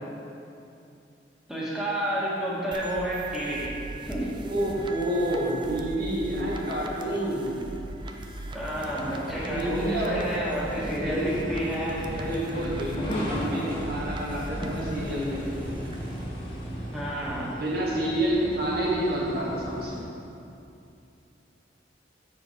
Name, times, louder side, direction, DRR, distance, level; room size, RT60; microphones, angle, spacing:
voice 1, 1.5-4.3 8.5-12.0 16.9-17.5, right 1 dB, 5° right, -7 dB, 1.7 m, -30 dB
sound 1, 2.7-16.2, right 2 dB, 25° right, 0.5 m, -40 dB
voice 2, 4.4-7.5 9.5-10.3 10.9-11.3 12.1-15.9 17.6-19.9, right 1 dB, 55° right, -5 dB, 2.0 m, -29 dB
sound 2, 8.7-20.0, equal, 30° left, 1.4 m, -36 dB
7.9 x 7.1 x 4.6 m, 2.7 s
head